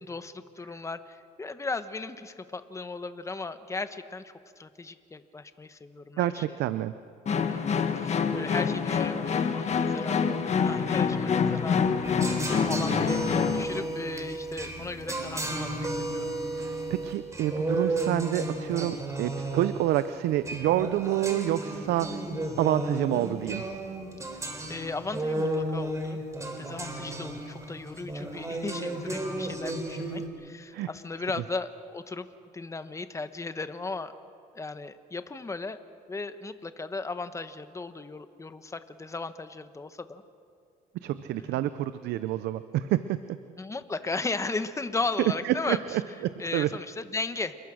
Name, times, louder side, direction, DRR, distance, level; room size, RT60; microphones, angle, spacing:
voice 1, 0.0-6.4 7.4-7.6 8.0-12.4 12.6-16.3 24.7-26.2 26.6-32.3 32.5-34.1 34.5-35.8 36.1-40.2 41.4-41.6 43.6-45.8 46.4-47.6, left 3 dB, 15° left, 11 dB, 1.2 m, -36 dB
voice 2, 6.2-7.0 16.6-22.2 22.6-23.6 30.7-30.9 40.9-43.2 45.4-46.0 46.5-46.7, right 13 dB, 80° right, 12 dB, 0.7 m, -28 dB
sound 1, 7.3-13.6, left 6 dB, 40° left, 1.5 m, -26 dB
sound 2, 12.0-30.3, right 1 dB, 20° right, 3.9 m, -33 dB
28.5 x 22.0 x 6.4 m, 2.4 s
cardioid pair, 110°, 17 cm